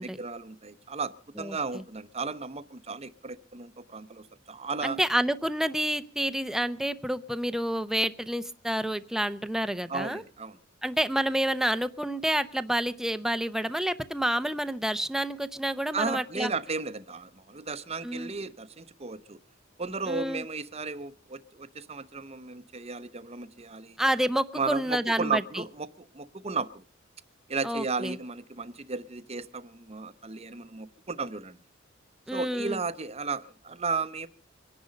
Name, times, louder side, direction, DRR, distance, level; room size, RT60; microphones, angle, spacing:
voice 1, 0.2-5.0 9.9-10.6 15.9-19.4 19.8-24.0 24.5-25.9 26.1-26.8 27.5-31.6 32.3-34.3, right 4 dB, 30° right, 13 dB, 0.8 m, -34 dB
voice 2, 1.4-1.8 4.8-10.2 10.8-16.5 18.0-18.3 20.1-20.4 24.0-25.6 27.6-28.2 32.3-32.8, right 1 dB, ahead, 11 dB, 0.7 m, -29 dB
24.0 x 10.5 x 5.2 m, 0.38 s
head